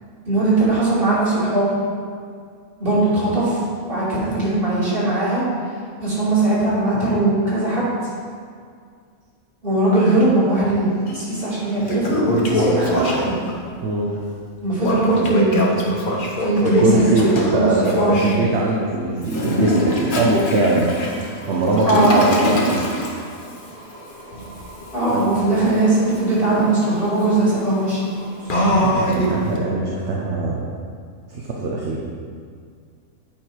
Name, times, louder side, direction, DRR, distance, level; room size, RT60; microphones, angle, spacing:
voice 1, 0.3-1.7 2.8-3.6 3.8-5.4 6.0-7.9 9.6-13.4 14.6-15.6 16.4-18.1 21.8-22.2 24.9-28.0, right 2 dB, 40° right, -8 dB, 2.5 m, -19 dB
Toilet flush, 11.1-11.2 11.6-13.5 14.8-18.4 19.2-29.6, left 1 dB, 40° left, 1.1 m, -24 dB
voice 2, 13.8-14.2 16.6-20.9 21.5-22.8 25.1-25.2 28.5-30.7 31.3-32.0, right 2 dB, 55° right, -3 dB, 1.0 m, -21 dB
9.0 x 4.9 x 4.6 m, 2.1 s
omnidirectional pair, 1.5 m